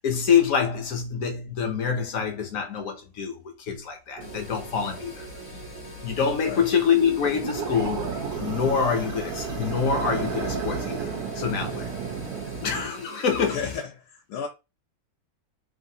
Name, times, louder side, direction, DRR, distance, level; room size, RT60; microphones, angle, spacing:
voice 1, 0.0-5.3 6.0-8.1 8.4-11.9 12.6-13.7, left 6 dB, 65° left, 1.0 m, -26 dB
sound 1, 4.2-13.8, left 1 dB, 35° left, 0.5 m, -44 dB
sound 2, 4.2-12.9, right 5 dB, 90° right, 1.3 m, -33 dB
voice 2, 13.4-14.5, left 6 dB, 90° left, 1.1 m, -33 dB
3.2 x 2.5 x 2.7 m
omnidirectional pair, 1.6 m